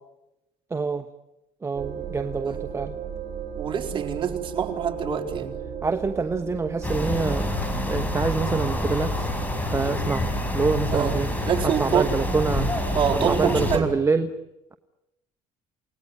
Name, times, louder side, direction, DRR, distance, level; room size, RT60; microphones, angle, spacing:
voice 1, 0.7-1.1 1.6-3.0 5.8-9.3 9.7-11.3 11.6-12.7 13.1-14.3, right 4 dB, 20° right, 7 dB, 1.1 m, -26 dB
sound 1, 1.7-10.9, right 8 dB, 50° right, 4.4 m, -37 dB
voice 2, 3.5-5.6 10.9-12.1 12.9-14.0, right 8 dB, 35° right, 3 dB, 4.2 m, -26 dB
sound 2, 6.8-13.8, left 1 dB, 10° left, 5.5 m, -27 dB
29.0 x 19.0 x 9.8 m, 0.95 s
cardioid pair, 115°, 14 cm